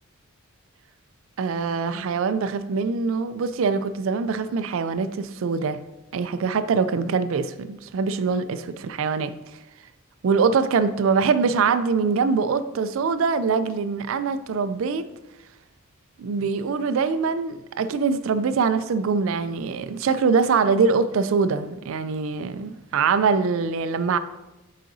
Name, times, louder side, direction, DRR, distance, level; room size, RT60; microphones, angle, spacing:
voice 1, 1.4-5.8 6.1-9.3 10.2-15.1 16.2-24.2, right 5 dB, 65° right, 0.4 m, -23 dB
7.4 x 4.9 x 2.6 m
head